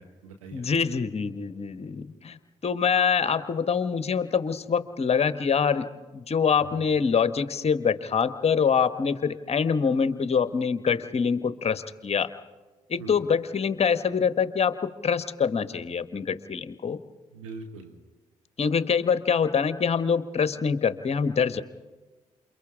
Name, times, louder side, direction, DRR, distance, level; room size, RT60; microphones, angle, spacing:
voice 1, 0.0-0.9 6.6-6.9 13.0-13.2 17.3-18.0, right 4 dB, 85° right, 3 dB, 1.4 m, -43 dB
voice 2, 0.5-2.4 2.6-12.3 12.9-17.0 18.6-21.6, left 6 dB, 40° left, 12 dB, 1.2 m, -25 dB
28.5 x 28.0 x 3.7 m, 1.3 s
figure-of-eight pair, 40°, 16 cm